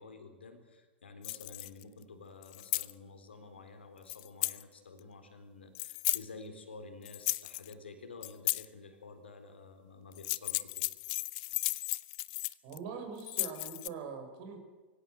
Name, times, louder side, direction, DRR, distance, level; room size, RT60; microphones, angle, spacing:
voice 1, 0.0-10.9 11.2-11.3, left 3 dB, 75° left, 7 dB, 3.9 m, -50 dB
sound 1, 1.2-1.8 2.4-2.9 4.1-4.6 5.7-6.2 7.1-7.7 8.2-8.6 10.1-12.8 13.2-13.9, left 26 dB, 45° left, 0.7 m, -34 dB
voice 2, 12.6-14.6, right 5 dB, 50° right, 5 dB, 6.1 m, -42 dB
24.0 x 16.5 x 8.0 m, 1.3 s
figure-of-eight pair, 95°, 6 cm